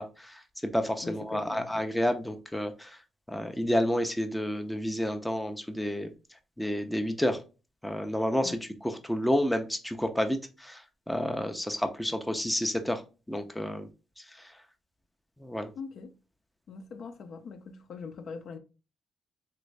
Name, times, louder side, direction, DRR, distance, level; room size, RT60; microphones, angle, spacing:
voice 1, 0.0-3.0 3.3-6.1 6.6-7.4 7.8-13.0 13.3-13.9 14.3-14.5 15.4-15.7, equal, 5° left, 0.5 m, -30 dB
voice 2, 1.0-1.7 8.4-8.6 15.8-16.1 16.7-18.6, left 5 dB, 65° left, 0.5 m, -42 dB
3.0 x 2.6 x 3.2 m
cardioid pair, 90°, 0 cm